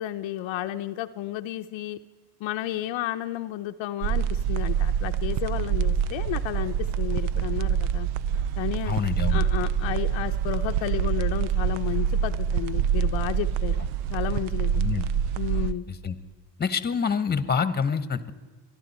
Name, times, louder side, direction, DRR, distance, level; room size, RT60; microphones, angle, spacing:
voice 1, 0.0-2.0 2.4-8.1 8.6-8.9 9.3-13.8 14.1-15.0 15.4-15.9, left 13 dB, 65° left, 7 dB, 0.7 m, -32 dB
sound 1, 4.0-15.7, right 8 dB, 75° right, 0.7 m, -26 dB
voice 2, 8.9-9.4 14.8-15.0 16.0-16.1 16.6-18.3, left 6 dB, 20° left, 13 dB, 1.1 m, -26 dB
23.5 x 12.0 x 4.3 m, 1.3 s
supercardioid pair, 85°, 50 cm